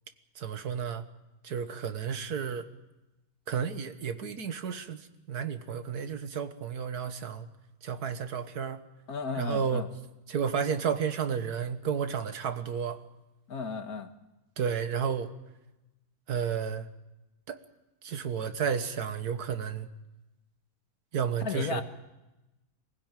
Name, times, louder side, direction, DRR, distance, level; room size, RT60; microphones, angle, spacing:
voice 1, 0.4-1.0 1.4-2.7 3.5-7.5 7.8-8.8 9.4-9.8 10.3-13.0 14.6-15.3 16.3-16.9 17.5-17.6 18.0-19.9 21.1-21.8, right 7 dB, 85° right, 9 dB, 1.8 m, -32 dB
voice 2, 9.1-9.9 13.5-14.1 21.4-21.8, left 5 dB, 70° left, 8 dB, 1.9 m, -34 dB
23.5 x 16.0 x 9.1 m, 1.0 s
omnidirectional pair, 1.6 m